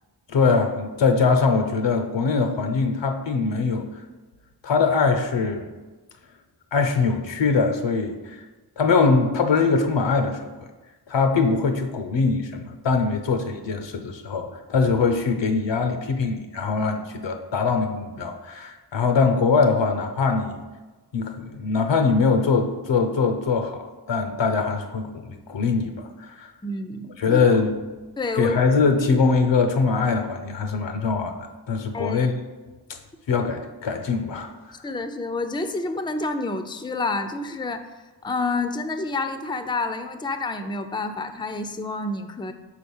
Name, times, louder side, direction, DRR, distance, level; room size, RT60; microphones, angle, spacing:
voice 1, 0.3-3.9 4.6-5.7 6.7-8.4 8.8-10.7 11.1-20.6 21.1-25.9 26.2-26.5 27.2-27.7 28.4-31.3 31.7-32.3 33.3-34.5, left 4 dB, 80° left, 6 dB, 0.8 m, -22 dB
voice 2, 26.6-27.4 28.2-28.6 31.9-32.3 34.8-37.9 38.2-42.5, left 3 dB, 10° left, 8 dB, 0.5 m, -28 dB
4.9 x 4.0 x 5.4 m, 1.2 s
cardioid pair, 45°, 43 cm